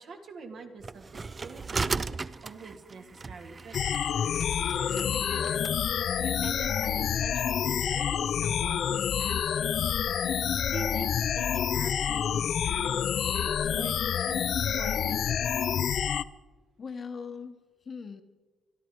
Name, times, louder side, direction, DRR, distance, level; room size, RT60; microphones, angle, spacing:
voice 1, 0.0-2.1 2.4-3.8 4.5-5.6 6.2-9.9 10.7-15.6, right 4 dB, 65° right, 3 dB, 2.2 m, -44 dB
sound 1, 0.8-5.7, right 4 dB, 30° right, 0.4 m, -36 dB
sound 2, 3.7-16.2, left 8 dB, 65° left, 0.4 m, -28 dB
voice 2, 16.8-18.2, left 5 dB, 45° left, 8 dB, 1.1 m, -40 dB
26.0 x 11.0 x 4.6 m, 1.3 s
cardioid pair, 90°, 0 cm